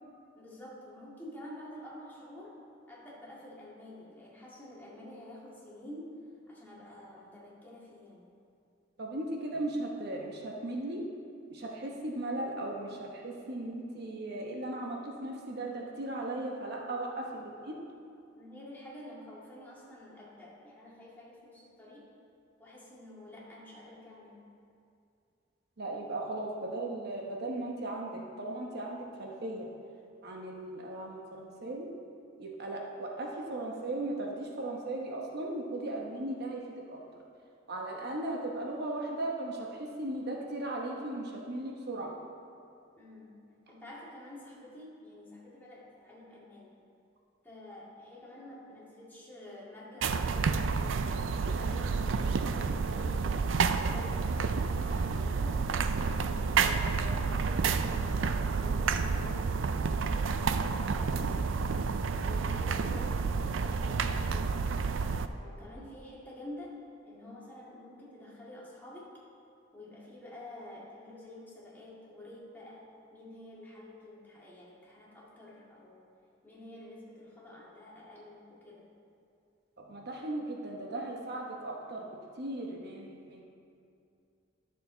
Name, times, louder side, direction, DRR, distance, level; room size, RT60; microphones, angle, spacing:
voice 1, 0.4-8.3 18.4-22.1 22.6-24.5 43.0-43.4 43.7-46.8 47.4-51.1 51.5-55.6 56.4-61.6 62.1-64.7 65.4-66.8 67.0-69.1 69.7-76.1 76.4-78.9, left 1 dB, 10° left, -7 dB, 2.1 m, -49 dB
voice 2, 9.0-11.0 11.5-17.8 25.8-29.7 30.2-31.9 32.4-36.6 36.9-37.2 37.7-42.1 79.8-82.1 82.4-83.4, right 2 dB, 55° right, -1 dB, 1.0 m, -37 dB
sound 1, 50.0-65.3, right 5 dB, 70° right, 0.4 m, -30 dB
11.5 x 6.7 x 3.9 m, 2.5 s
head